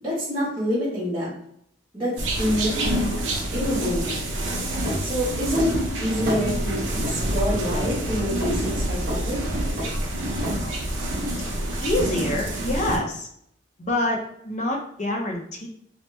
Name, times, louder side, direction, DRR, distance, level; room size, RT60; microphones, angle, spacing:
voice 1, 0.0-1.3 1.9-3.1 3.5-4.2 5.0-5.7 6.0-9.4, equal, 20° right, -12 dB, 1.1 m, -27 dB
sound 1, 2.2-13.0, right 1 dB, 90° right, 0.7 m, -27 dB
sound 2, 4.9-5.0 5.5-5.7 6.3-6.5 7.0-7.2 7.7-7.9 8.4-8.5 9.1-9.2 9.8-10.0 10.4-10.6, right 1 dB, 50° right, 0.8 m, -29 dB
voice 2, 11.8-13.3 13.8-15.7, left 1 dB, 40° left, 1 dB, 0.6 m, -26 dB
2.8 x 2.1 x 3.2 m, 0.71 s
head